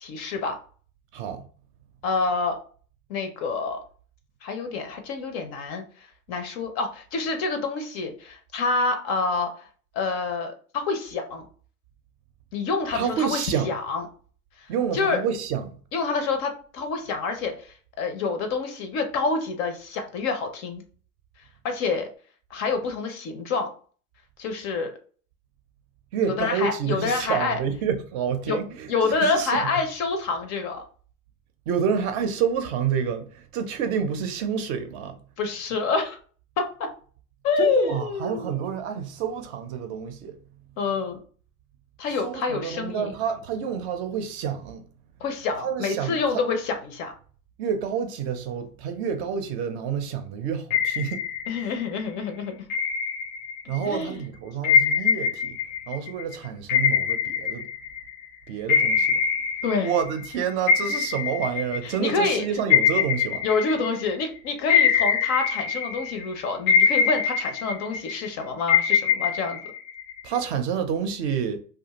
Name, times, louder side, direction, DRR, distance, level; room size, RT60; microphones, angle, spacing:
voice 1, 0.0-0.6 2.0-2.6 3.1-3.8 4.4-5.8 6.3-9.7 9.9-11.4 12.5-14.0 14.6-14.7 14.9-15.2 15.9-20.8 21.6-22.1 22.5-23.7 24.4-24.9 26.4-27.6 28.5-28.6 28.9-30.8 35.4-36.2 36.6-36.9 37.4-38.6 40.8-41.2 42.0-43.1 45.2-47.1 51.5-52.6 53.8-54.3 59.6-59.9 61.8-62.4 63.4-69.6, left 4 dB, 40° left, 0.4 m, -27 dB
voice 2, 1.1-1.4 12.9-13.7 14.7-15.7 26.1-29.6 31.7-35.2 37.6-40.4 42.2-44.8 45.6-46.4 47.6-51.2 51.6-51.7 53.7-55.6 55.9-57.7 58.5-59.2 59.8-63.4 70.2-71.6, right 7 dB, 50° right, 0.5 m, -28 dB
sound 1, 50.7-52.0 52.7-53.9 54.6-58.3 58.7-60.3 60.7-64.2 64.7-66.3 66.7-68.3 68.7-70.4, left 7 dB, 80° left, 0.6 m, -23 dB
2.5 x 2.3 x 2.8 m
supercardioid pair, 130°, 43 cm